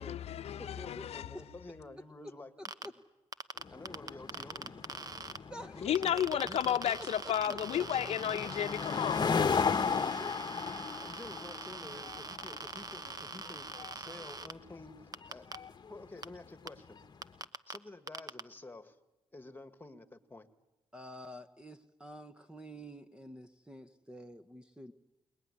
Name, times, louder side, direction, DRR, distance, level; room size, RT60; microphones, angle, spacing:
voice 1, 0.0-1.3 5.8-9.3, left 10 dB, 70° left, 0.9 m, -33 dB
voice 2, 0.6-2.5 3.7-4.9 5.7-7.0 7.7-7.8 8.2-8.5 9.6-10.4 11.0-15.5 15.9-17.0 17.7-19.0 19.3-20.5, left 2 dB, 20° left, 1.9 m, -49 dB
sound 1, 2.7-2.9 3.3-5.4 6.0-14.5 15.1-15.6 16.2-16.3 16.7-16.8 17.2-17.8 18.1-18.4, right 4 dB, 35° right, 1.1 m, -43 dB
sound 2, 3.6-17.2, left 6 dB, 40° left, 1.2 m, -36 dB
voice 3, 5.5-5.9 7.5-8.1 20.9-24.9, equal, 10° right, 1.2 m, -49 dB
27.5 x 20.5 x 9.9 m
cardioid pair, 80°, 11 cm